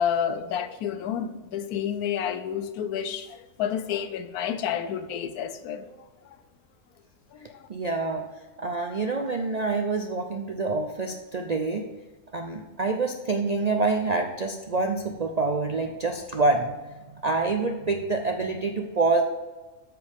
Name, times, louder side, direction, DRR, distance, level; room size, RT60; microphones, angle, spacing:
voice 1, 0.0-5.9 7.5-7.6, left 8 dB, 90° left, 1.2 m, -29 dB
voice 2, 7.7-8.3 8.6-11.8 12.3-16.7 17.1-19.2, right 3 dB, 60° right, 0.4 m, -26 dB
13.0 x 4.8 x 3.6 m
omnidirectional pair, 1.5 m